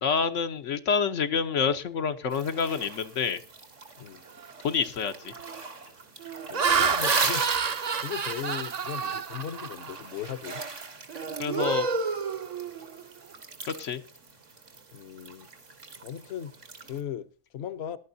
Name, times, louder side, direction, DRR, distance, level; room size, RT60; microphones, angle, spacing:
voice 1, 0.0-3.4 4.6-5.3 11.4-11.9 13.8-14.0, left 6 dB, 80° left, 1.2 m, -27 dB
sound 1, 2.3-17.0, right 4 dB, 80° right, 2.3 m, -39 dB
Laughter, 4.4-4.7 5.3-5.6 6.2-10.0 10.5-10.7 11.1-13.0, right 5 dB, 40° right, 0.6 m, -29 dB
voice 2, 6.5-7.5 8.0-10.6 14.9-15.5 16.0-18.0, left 9 dB, 60° left, 1.0 m, -38 dB
19.5 x 11.5 x 2.7 m
omnidirectional pair, 1.3 m